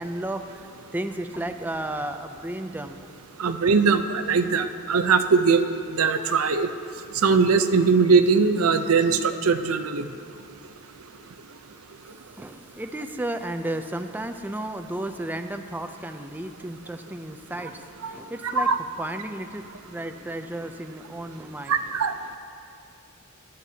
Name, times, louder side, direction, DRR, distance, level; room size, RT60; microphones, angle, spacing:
voice 1, 0.0-3.0 3.4-3.5 12.0-18.7 19.0-21.8, right 1 dB, 10° right, 6 dB, 0.4 m, -33 dB
voice 2, 3.4-6.7 7.2-10.1 18.0-18.2 18.6-18.8 21.7-22.1, right 5 dB, 85° right, 9 dB, 0.6 m, -21 dB
15.0 x 12.0 x 2.8 m, 2.4 s
head